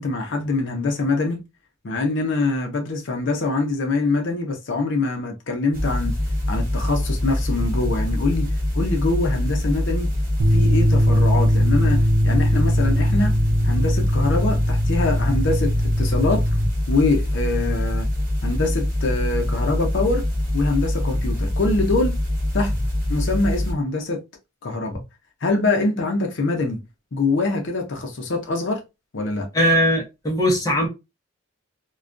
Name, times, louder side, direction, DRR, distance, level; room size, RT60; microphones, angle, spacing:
voice 1, 0.0-1.4 1.8-6.2 6.5-8.5 8.7-10.1 10.5-13.4 13.6-16.4 16.9-18.1 18.4-20.3 20.5-22.2 22.5-22.7 23.1-24.2 24.6-25.0 25.4-26.8 27.1-28.8 29.1-29.5, left 3 dB, 60° left, 0.6 m, -24 dB
sound 1, 5.7-23.7, left 1 dB, 45° right, 0.9 m, -24 dB
sound 2, 10.4-16.7, equal, 90° right, 0.6 m, -20 dB
voice 2, 29.5-30.9, equal, 15° left, 0.6 m, -19 dB
2.3 x 2.2 x 2.4 m
head